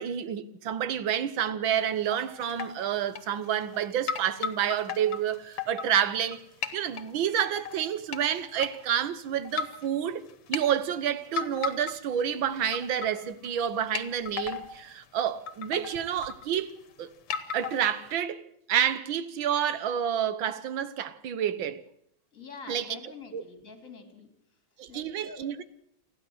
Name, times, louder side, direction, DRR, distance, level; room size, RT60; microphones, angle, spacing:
voice 1, 0.0-6.4 6.7-16.7 17.0-17.1 17.5-18.4 18.7-21.8 22.7-23.4 24.8-25.6, right 9 dB, 65° right, 1.8 m, -29 dB
sound 1, 1.8-2.2 2.5-2.7 3.2-3.8 4.1-6.4 6.6-7.1 7.6-8.2 8.6-8.7 9.4-9.9 10.3-10.6 11.3-12.2 12.5-13.2 13.4-13.5 13.9-14.8 15.2-15.3 15.5-16.8 17.3-18.1, left 7 dB, 85° left, 2.4 m, -34 dB
voice 2, 22.3-24.3 24.9-25.5, left 4 dB, 35° left, 3.6 m, -46 dB
29.0 x 11.5 x 7.9 m
omnidirectional pair, 2.4 m